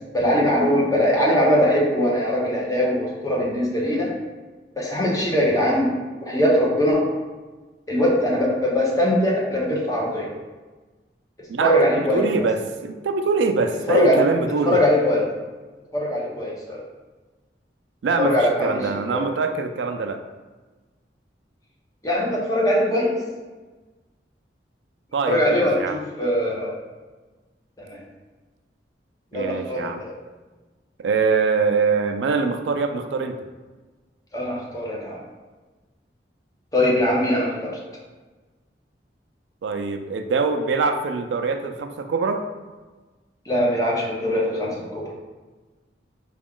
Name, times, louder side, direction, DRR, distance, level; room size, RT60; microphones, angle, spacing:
voice 1, 0.1-4.1 4.8-5.9 6.2-7.0 7.9-10.3 11.6-12.2 13.9-14.2 14.6-15.2 15.9-16.8 18.2-19.2 22.0-23.1 25.3-25.8 26.2-26.7 27.8-28.0 29.3-30.1 34.3-35.2 36.7-37.8 43.5-45.1, left 1 dB, 20° left, -4 dB, 0.9 m, -21 dB
voice 2, 11.5-14.8 18.0-20.2 25.1-26.0 29.3-30.0 31.0-33.4 39.6-42.4, right 4 dB, 85° right, 6 dB, 0.4 m, -23 dB
4.9 x 2.3 x 3.6 m, 1.3 s
head